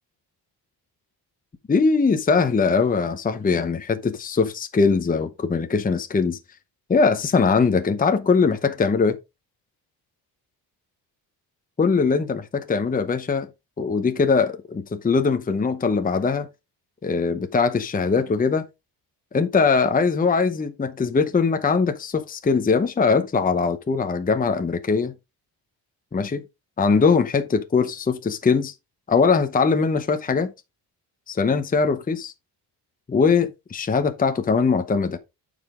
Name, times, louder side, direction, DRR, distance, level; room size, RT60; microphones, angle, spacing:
voice 1, 1.7-6.4 6.9-9.2 11.8-13.5 13.8-16.5 17.0-18.6 19.3-25.1 26.1-26.4 26.8-28.7 29.1-30.5 31.3-32.3 33.1-35.2, left 5 dB, 20° left, 0.8 m, -21 dB
8.8 x 5.1 x 3.6 m
cardioid pair, 90°, 42 cm